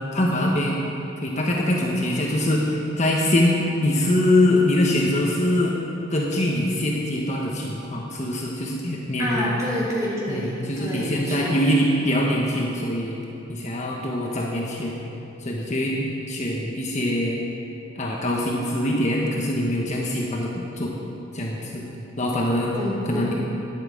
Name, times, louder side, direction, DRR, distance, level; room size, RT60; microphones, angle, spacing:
voice 1, 0.1-0.8 1.2-5.8 6.1-9.6 10.3-13.2 13.5-15.0 15.4-17.4 17.9-20.9 21.3-21.8 22.2-22.7 23.1-23.3, left 1 dB, 35° left, -2 dB, 1.2 m, -23 dB
voice 2, 9.2-11.6 22.7-23.3, equal, 15° right, -6 dB, 3.3 m, -28 dB
10.5 x 8.8 x 7.5 m, 2.8 s
head